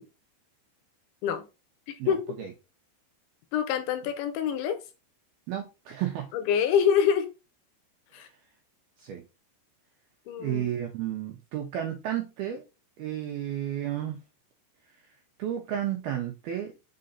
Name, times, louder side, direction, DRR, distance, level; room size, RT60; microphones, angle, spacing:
voice 1, 2.0-2.5 5.5-6.3 8.1-8.3 9.0-9.2 10.4-12.6 13.0-14.2 15.4-16.7, right 11 dB, 90° right, 2.2 m, -32 dB
voice 2, 3.5-4.8 6.3-7.3 8.1-8.3 10.3-10.7, left 8 dB, 80° left, 3.1 m, -25 dB
6.7 x 3.9 x 4.0 m
omnidirectional pair, 5.5 m